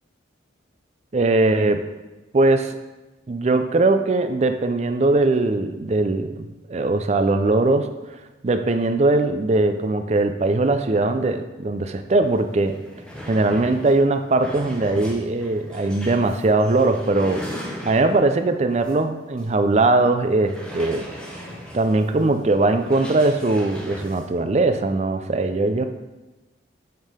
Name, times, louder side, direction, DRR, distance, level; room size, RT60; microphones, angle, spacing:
voice 1, 1.1-1.8 2.3-2.8 3.3-7.9 8.4-12.8 13.3-17.5 17.8-21.1 21.7-25.9, right 2 dB, 35° right, 8 dB, 0.4 m, -20 dB
sound 1, 12.3-12.4 12.6-18.3 18.8-19.0 19.4-19.5 20.4-24.3, equal, 5° left, 0.8 m, -38 dB
8.0 x 3.7 x 5.0 m, 1.1 s
head